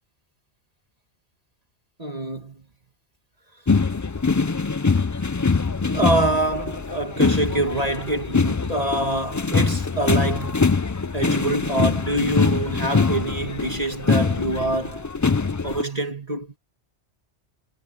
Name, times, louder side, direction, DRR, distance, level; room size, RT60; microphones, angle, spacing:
voice 1, 2.0-2.6 5.0-5.1 5.8-10.6 11.1-15.1 15.4-16.6, right 1 dB, 35° right, 1.9 m, -26 dB
sound 1, 3.7-15.8, left 4 dB, 30° left, 0.3 m, -23 dB
omnidirectional pair, 1.2 m